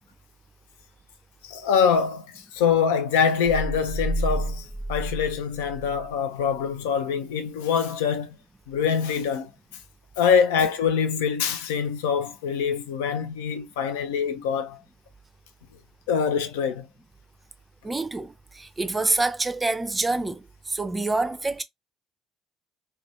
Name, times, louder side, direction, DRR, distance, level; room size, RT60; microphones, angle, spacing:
voice 1, 1.4-8.4 8.7-9.5 10.2-14.8 16.1-16.9, left 7 dB, 70° left, 0.4 m, -24 dB
sound 1, 3.4-6.2, right 1 dB, 10° left, 0.9 m, -30 dB
voice 2, 17.8-21.6, right 3 dB, 20° right, 0.4 m, -27 dB
2.4 x 2.2 x 2.7 m
figure-of-eight pair, 50°, 0 cm